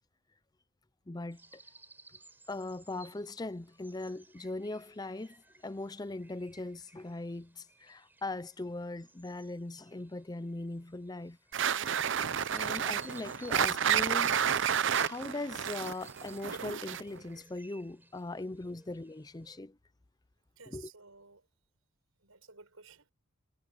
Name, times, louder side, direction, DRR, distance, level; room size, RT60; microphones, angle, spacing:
voice 1, 1.1-1.5 2.5-11.4 12.2-14.5 14.8-19.8 20.7-20.8, left 2 dB, 20° left, 0.5 m, -40 dB
sound 1, 1.3-19.6, right 2 dB, 10° right, 3.9 m, -59 dB
sound 2, 11.5-17.2, right 8 dB, 60° right, 0.6 m, -30 dB
voice 2, 20.6-21.5 22.1-23.1, right 5 dB, 90° right, 5.9 m, -55 dB
head